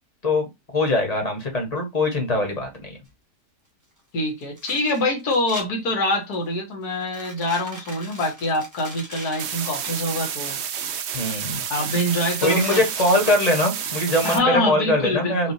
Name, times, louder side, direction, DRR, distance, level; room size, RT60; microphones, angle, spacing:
voice 1, 0.2-3.0 11.1-11.6 12.4-15.5, left 1 dB, 25° left, 1.3 m, -22 dB
sound 1, 3.1-3.2 4.4-5.6 6.1-6.5 7.0-9.9 10.7-11.3 11.6-11.7 11.9-14.0, equal, 10° right, 1.3 m, -39 dB
voice 2, 4.1-10.6 11.7-12.8 14.2-15.5, left 1 dB, 70° left, 1.9 m, -25 dB
sound 2, 9.4-14.4, right 8 dB, 65° right, 0.6 m, -30 dB
5.8 x 2.6 x 2.8 m
omnidirectional pair, 1.7 m